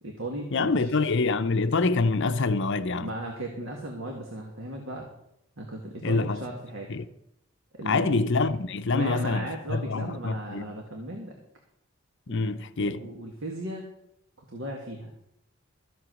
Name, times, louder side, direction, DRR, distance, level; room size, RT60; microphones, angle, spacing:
voice 1, 0.0-0.9 3.0-5.1 5.6-6.9 7.8-8.3 8.9-11.4 12.3-12.5 12.8-13.9 14.5-15.1, right 1 dB, 70° right, 2.0 m, -36 dB
voice 2, 0.5-3.1 6.0-6.4 6.9-7.1 7.8-10.7 12.3-13.1, left 3 dB, 60° left, 0.7 m, -26 dB
14.0 x 8.0 x 6.3 m
head